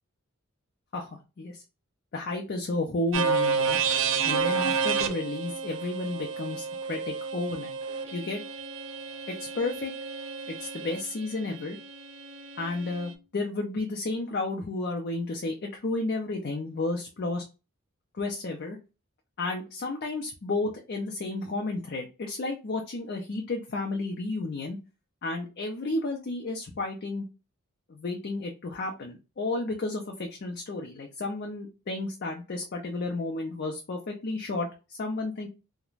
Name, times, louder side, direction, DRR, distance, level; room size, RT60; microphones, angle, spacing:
voice 1, 0.9-1.6 2.1-3.8 4.2-7.8 8.1-8.4 9.3-9.9 10.5-11.8 12.6-17.4 18.2-18.8 19.4-24.8 25.2-27.3 27.9-35.5, left 2 dB, 45° left, 2 dB, 0.4 m, -32 dB
sound 1, 3.1-11.0, right 5 dB, 60° right, 0.4 m, -30 dB
Bowed string instrument, 7.8-13.3, left 1 dB, 90° right, 0.8 m, -47 dB
2.4 x 2.1 x 3.0 m, 0.30 s
head